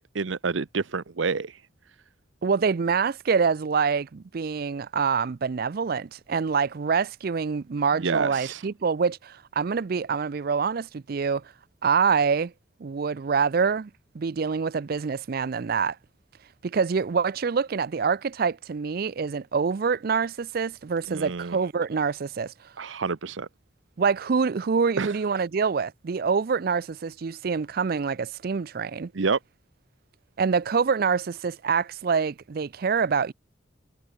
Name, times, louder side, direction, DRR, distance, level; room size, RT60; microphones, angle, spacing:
voice 1, 0.0-1.6 8.0-8.6 21.1-21.6 22.8-23.5 25.0-25.2 29.1-29.4, right 4 dB, 80° right, 0.8 m, -28 dB
voice 2, 2.4-11.4 11.8-12.5 12.8-13.9 14.1-16.0 16.6-22.5 24.0-29.1 30.4-33.3, right 5 dB, 50° right, 0.4 m, -26 dB
head